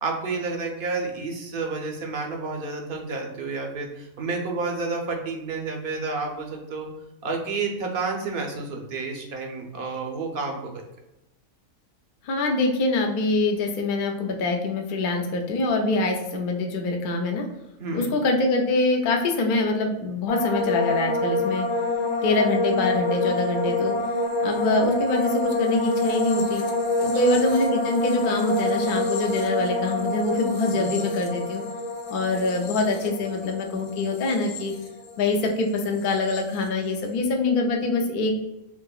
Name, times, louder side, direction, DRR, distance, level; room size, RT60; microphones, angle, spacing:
voice 1, 0.0-6.9 7.2-10.8 17.8-18.1 27.0-27.1 30.7-30.9, right 3 dB, 55° right, 1 dB, 0.6 m, -30 dB
voice 2, 12.2-17.4 17.9-21.7 22.2-23.9 24.4-26.6 27.0-31.6 32.1-34.7 35.2-38.4, left 2 dB, 60° left, 2 dB, 0.5 m, -24 dB
sound 1, 20.3-35.5 35.8-36.4, left 2 dB, 80° left, 1.0 m, -27 dB
3.6 x 2.8 x 2.3 m, 0.93 s
omnidirectional pair, 1.5 m